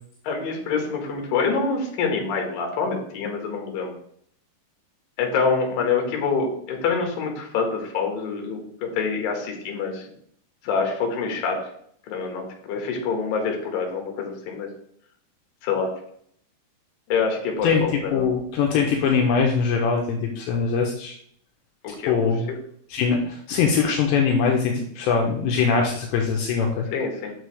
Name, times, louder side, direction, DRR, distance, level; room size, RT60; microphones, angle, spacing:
voice 1, 0.2-3.9 5.2-10.0 10.6-11.6 12.1-14.7 15.6-15.9 17.1-18.3 21.8-22.3 26.9-27.3, left 5 dB, 65° left, 2 dB, 2.6 m, -26 dB
voice 2, 18.1-21.1 22.1-22.5 22.9-26.9, left 5 dB, 80° left, 1 dB, 2.7 m, -22 dB
6.8 x 6.4 x 3.2 m, 0.64 s
omnidirectional pair, 5.5 m